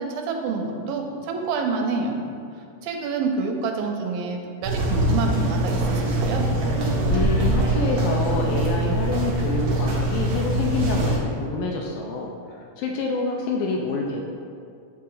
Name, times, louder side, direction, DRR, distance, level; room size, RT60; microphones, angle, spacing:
voice 1, 0.0-2.2 2.8-6.5, right 4 dB, 85° right, 3 dB, 2.4 m, -27 dB
sound 1, 4.6-11.2, right 1 dB, 65° right, 1.9 m, -23 dB
voice 2, 7.1-12.3 12.8-14.2, left 3 dB, 80° left, 0 dB, 2.2 m, -27 dB
8.8 x 4.3 x 3.8 m, 2.4 s
omnidirectional pair, 4.1 m